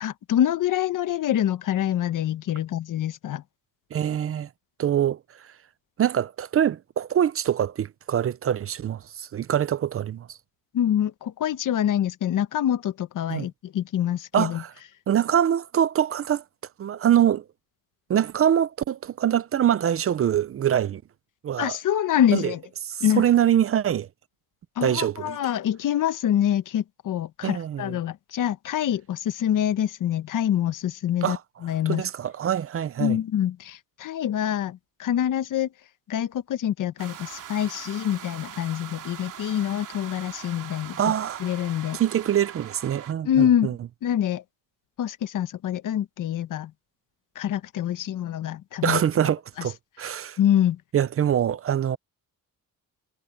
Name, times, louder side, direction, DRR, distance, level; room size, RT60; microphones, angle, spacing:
voice 1, 0.0-3.4 10.7-14.6 21.6-22.6 23.0-23.2 24.8-31.4 31.6-32.0 33.0-35.7 36.1-41.0 41.4-42.0 43.2-43.8 44.0-44.4 45.0-46.7 47.3-49.0 50.4-50.8, left 10 dB, 65° left, 1.1 m, -25 dB
voice 2, 3.9-4.5 4.8-5.5 6.0-10.4 13.3-13.5 14.3-14.7 15.1-16.4 16.8-17.4 18.1-21.0 21.4-21.8 22.3-22.5 22.9-24.1 24.8-25.4 27.4-28.0 31.2-31.4 31.9-33.2 41.0-41.4 41.9-43.8 48.8-50.4 50.9-52.0, right 10 dB, 40° right, 0.5 m, -24 dB
sound 1, 37.0-43.1, right 9 dB, 65° right, 2.9 m, -41 dB
cardioid pair, 140°, 34 cm